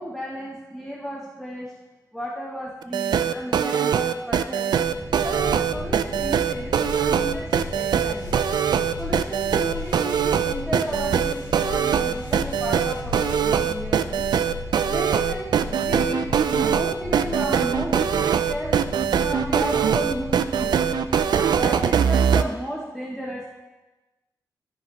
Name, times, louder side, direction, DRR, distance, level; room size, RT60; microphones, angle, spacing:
voice 1, 0.0-1.7 2.1-4.7 5.2-8.4 9.0-14.3 14.9-18.8 19.2-20.8 21.3-23.5, equal, ahead, -4 dB, 1.0 m, -33 dB
sound 1, 2.8-22.4, right 8 dB, 80° right, 0.4 m, -22 dB
sound 2, 4.8-21.9, left 2 dB, 20° right, 2.8 m, -35 dB
sound 3, 7.5-13.8, left 1 dB, 85° left, 1.6 m, -47 dB
13.0 x 4.9 x 3.1 m, 1.1 s
cardioid pair, 90°, 7 cm